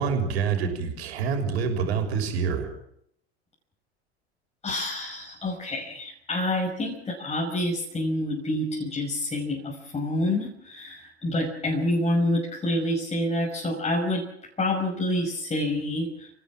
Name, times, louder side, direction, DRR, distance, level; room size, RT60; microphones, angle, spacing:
voice 1, 0.0-2.7, right 6 dB, 65° right, 5 dB, 6.4 m, -26 dB
voice 2, 4.6-14.2 14.6-16.3, left 1 dB, 20° left, -1 dB, 5.8 m, -27 dB
29.5 x 17.0 x 7.3 m, 0.71 s
figure-of-eight pair, 80°, 34 cm